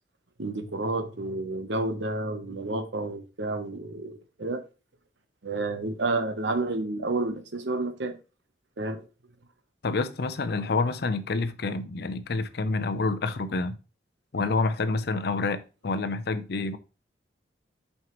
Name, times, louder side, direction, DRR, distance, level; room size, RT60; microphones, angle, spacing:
voice 1, 0.4-4.6 5.4-8.2 8.8-9.0, right 2 dB, 75° right, 0.9 m, -30 dB
voice 2, 9.8-13.8 14.3-16.8, left 3 dB, 60° left, 0.6 m, -28 dB
5.9 x 5.5 x 3.0 m
head